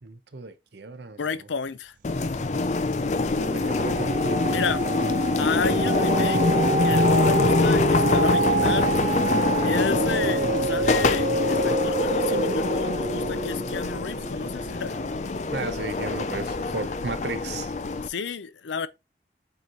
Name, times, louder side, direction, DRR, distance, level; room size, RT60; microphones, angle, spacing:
voice 1, 0.0-1.5 2.9-4.2 15.5-17.7, right 3 dB, 70° right, 0.8 m, -35 dB
voice 2, 1.2-1.9 4.4-4.8 5.4-6.4 6.8-8.9 9.6-15.0 18.0-18.9, left 5 dB, 90° left, 0.6 m, -31 dB
sound 1, 2.0-18.1, left 3 dB, 40° left, 0.4 m, -25 dB
sound 2, 2.2-2.7 3.1-15.6 16.1-16.2, right 3 dB, 45° right, 0.3 m, -28 dB
8.1 x 3.1 x 3.8 m
head